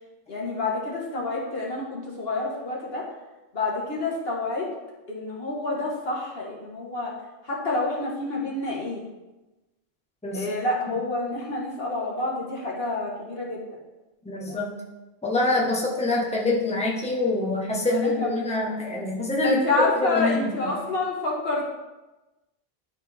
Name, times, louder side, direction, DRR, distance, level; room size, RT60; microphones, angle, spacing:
voice 1, 0.3-3.0 3.5-4.7 5.1-7.1 7.4-9.0 10.3-13.6 17.9-18.6 19.4-21.6, left 2 dB, 65° left, -3 dB, 2.0 m, -28 dB
voice 2, 14.2-14.7 15.2-19.6 20.0-20.5, left 2 dB, 5° left, -4 dB, 1.3 m, -25 dB
12.0 x 4.3 x 3.6 m, 1.1 s
omnidirectional pair, 1.1 m